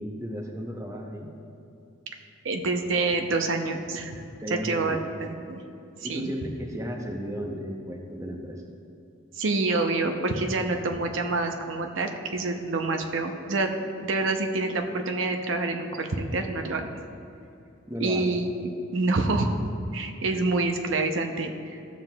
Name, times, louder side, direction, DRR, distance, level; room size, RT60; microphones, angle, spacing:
voice 1, 0.0-1.3 4.2-5.1 6.0-8.6 17.9-18.4, equal, 15° right, 2 dB, 0.5 m, -34 dB
voice 2, 2.4-4.1 4.5-5.6 6.0-6.3 9.4-16.9 18.0-19.6 19.9-21.8, right 3 dB, 70° right, 5 dB, 0.6 m, -27 dB
13.5 x 7.3 x 2.3 m, 2.7 s
head